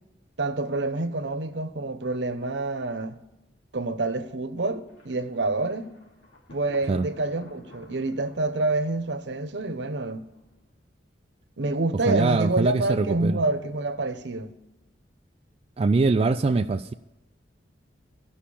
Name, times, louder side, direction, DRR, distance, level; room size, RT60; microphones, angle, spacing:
voice 1, 0.4-3.2 3.7-5.9 6.5-10.3 11.6-14.5, right 2 dB, 70° right, 0.9 m, -27 dB
Thunder, 4.9-10.7, left 2 dB, 80° left, 2.4 m, -53 dB
voice 2, 12.1-13.4 15.8-16.9, right 3 dB, 35° right, 0.3 m, -23 dB
13.0 x 5.7 x 8.5 m
head